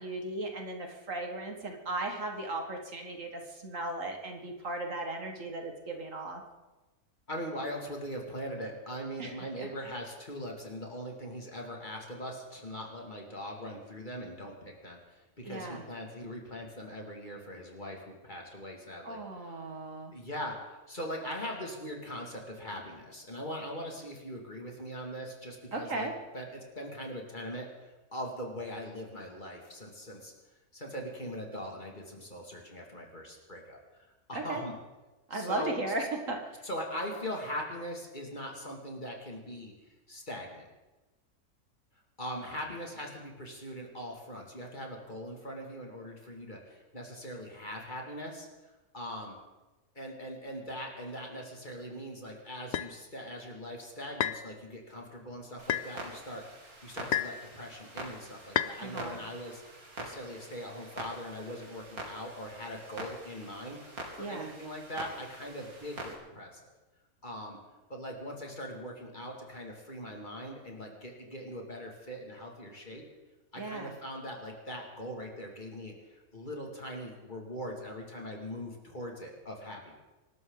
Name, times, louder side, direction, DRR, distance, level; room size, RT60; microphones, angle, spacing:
voice 1, 0.0-6.4 9.2-9.7 15.4-15.8 19.0-20.1 25.7-26.1 34.3-34.6 35.3-36.6 58.8-59.2 64.2-64.5 73.6-74.0, right 2 dB, 60° right, 3 dB, 2.2 m, -37 dB
voice 2, 7.3-19.6 20.1-26.1 26.3-30.3 30.7-33.8 34.3-34.7 35.3-35.7 36.6-39.7 40.1-40.7 42.2-48.5 48.9-49.4 49.9-56.4 56.8-59.6 60.0-63.8 64.2-66.7 67.2-67.6 67.9-73.0 73.5-80.0, equal, 30° left, 0 dB, 2.7 m, -41 dB
sound 1, 52.7-52.9 54.2-54.5 55.7-55.9 57.1-57.4 58.5-58.8, left 10 dB, 60° left, 0.8 m, -30 dB
Clock, 55.6-66.1, right 1 dB, 80° right, 3.2 m, -45 dB
26.5 x 12.5 x 4.0 m, 1.1 s
omnidirectional pair, 1.6 m